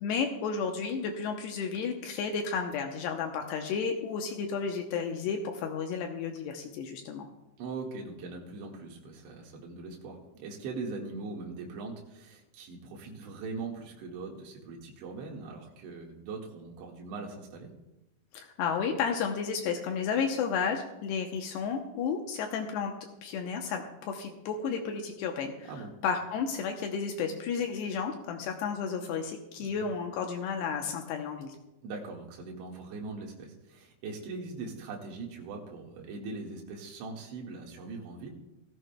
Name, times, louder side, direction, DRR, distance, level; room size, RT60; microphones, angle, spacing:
voice 1, 0.0-7.3 18.3-22.9 23.2-25.7 26.0-31.6, left 6 dB, 80° left, 3 dB, 2.4 m, -32 dB
voice 2, 7.6-17.7 25.7-25.9 29.6-29.8 31.8-38.3, right 3 dB, 70° right, 0 dB, 3.8 m, -41 dB
18.0 x 14.0 x 2.2 m, 0.94 s
omnidirectional pair, 5.7 m